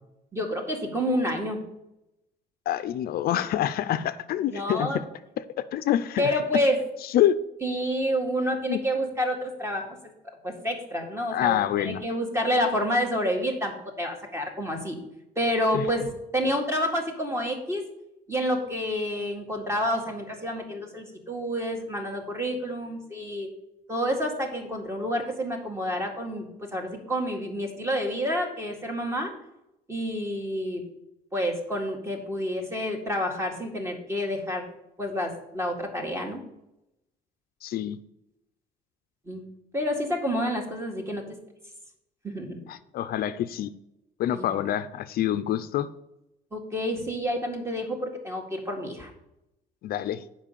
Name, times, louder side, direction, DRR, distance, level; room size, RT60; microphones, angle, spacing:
voice 1, 0.3-1.6 4.5-5.0 6.2-6.8 7.6-9.9 10.4-15.0 15.4-16.0 16.3-17.8 18.3-23.5 23.9-26.5 26.7-29.3 29.9-30.8 31.3-34.6 35.0-36.4 39.3-39.4 39.7-41.2 42.2-42.6 44.3-44.5 46.5-49.1, equal, 15° right, 2 dB, 2.0 m, -28 dB
voice 2, 2.7-4.9 5.4-6.4 7.0-7.4 8.7-8.8 11.3-12.0 15.7-15.9 37.6-38.0 42.7-43.7 44.2-45.9 49.8-50.2, left 11 dB, 65° left, 13 dB, 0.5 m, -26 dB
7.4 x 5.3 x 6.9 m, 0.86 s
cardioid pair, 110°, 17 cm